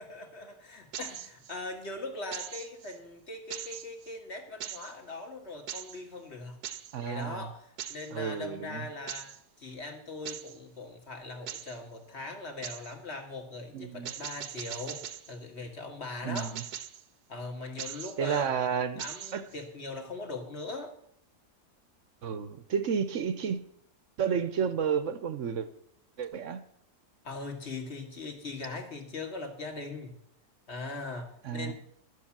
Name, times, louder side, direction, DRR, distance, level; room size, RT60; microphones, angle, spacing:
voice 1, 0.0-6.6 7.0-15.0 15.3-16.5 17.3-18.5 19.0-20.9 27.2-30.2 30.7-31.7, left 3 dB, 40° left, 3 dB, 2.0 m, -40 dB
sound 1, 0.9-1.6 2.3-3.0 3.5-4.1 4.6-4.9 5.7-6.0 6.6-7.0 7.8-8.1 9.1-9.4 10.3-10.6 11.5-11.8 12.6-12.9 14.1-15.3 16.4-17.0 17.8-18.5 19.0-19.6, right 11 dB, 75° right, 1.2 m, -41 dB
voice 2, 6.9-7.5 8.1-8.9 13.7-14.1 16.2-16.6 18.2-19.0 19.3-19.4 22.2-23.6 24.2-25.7 26.2-26.6 31.4-31.7, right 7 dB, 55° right, 12 dB, 1.0 m, -31 dB
11.5 x 7.7 x 7.2 m, 0.68 s
omnidirectional pair, 1.7 m